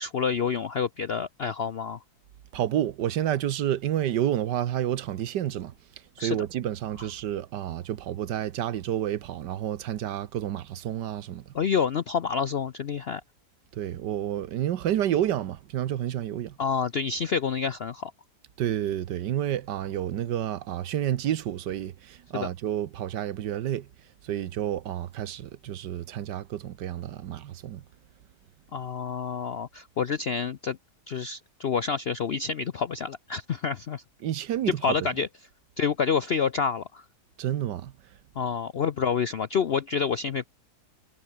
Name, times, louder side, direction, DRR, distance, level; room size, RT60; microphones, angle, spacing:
voice 1, 0.0-2.0 6.2-6.4 7.0-7.1 11.5-13.2 16.6-18.1 22.3-22.5 28.7-30.8 31.1-34.0 34.7-35.3 35.8-37.0 38.4-40.5, left 6 dB, 65° left, 0.6 m, -28 dB
voice 2, 2.5-5.7 6.2-11.4 13.7-16.6 18.6-23.9 24.2-27.8 34.2-35.0 37.4-37.9, right 11 dB, 75° right, 1.5 m, -29 dB
omnidirectional pair, 1.9 m